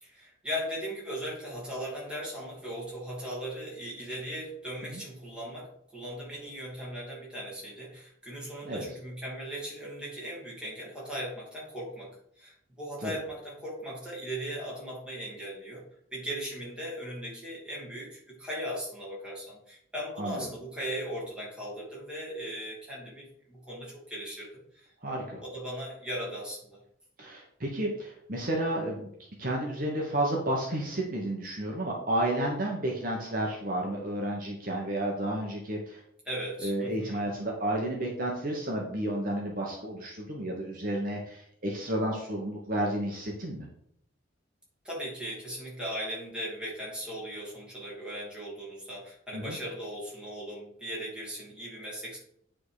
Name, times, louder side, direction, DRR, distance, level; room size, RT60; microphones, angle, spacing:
voice 1, 0.0-15.8 16.1-24.9 25.4-26.8 36.2-37.2 44.8-52.2, equal, 5° right, -6 dB, 2.7 m, -38 dB
voice 2, 20.2-20.5 25.0-25.4 27.2-29.1 29.4-36.0 36.6-43.7 49.3-49.6, right 1 dB, 45° right, -1 dB, 1.3 m, -31 dB
9.1 x 3.7 x 4.9 m, 0.69 s
head